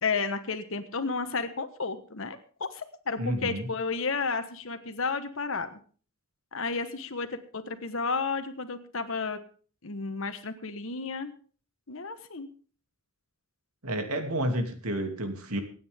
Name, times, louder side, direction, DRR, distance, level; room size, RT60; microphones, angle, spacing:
voice 1, 0.0-5.8 6.5-9.4 9.8-11.3 11.9-12.5, left 4 dB, 65° left, 8 dB, 1.3 m, -32 dB
voice 2, 3.2-3.7 13.8-15.6, right 1 dB, 90° right, 6 dB, 2.7 m, -30 dB
25.5 x 9.3 x 3.6 m, 0.41 s
head